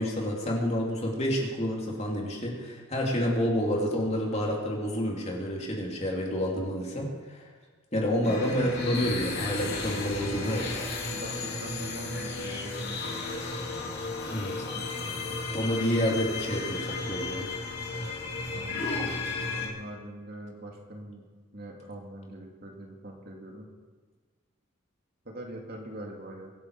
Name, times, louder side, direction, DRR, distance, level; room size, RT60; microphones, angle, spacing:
voice 1, 0.0-7.4 7.9-10.7 14.3-14.7 15.5-17.5, equal, 30° left, -2 dB, 2.8 m, -29 dB
sound 1, 8.2-19.7, left 3 dB, 50° left, 2.9 m, -34 dB
voice 2, 11.1-13.9 14.7-15.2 18.5-18.9 19.5-21.2 21.5-23.7 25.2-26.5, right 1 dB, 45° right, 0 dB, 2.5 m, -43 dB
24.0 x 10.0 x 4.8 m, 1.4 s
head